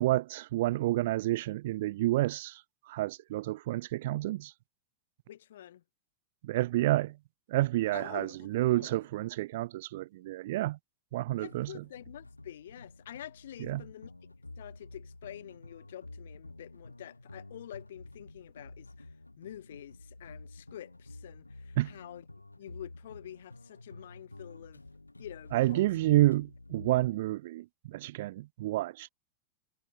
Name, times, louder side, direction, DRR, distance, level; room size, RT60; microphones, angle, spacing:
voice 1, 0.0-4.5 6.4-7.2 7.5-10.8 11.1-11.8 13.6-13.8 21.8-21.9 25.5-29.1, right 16 dB, 55° right, 1.2 m, -29 dB
voice 2, 5.3-5.8 7.9-8.9 11.4-14.1 14.6-19.1 19.4-22.3 22.6-24.8 25.2-25.8, left 11 dB, 60° left, 5.6 m, -47 dB
sound 1, 11.4-27.1, left 2 dB, 85° left, 1.9 m, -50 dB
figure-of-eight pair, 90°, 0 cm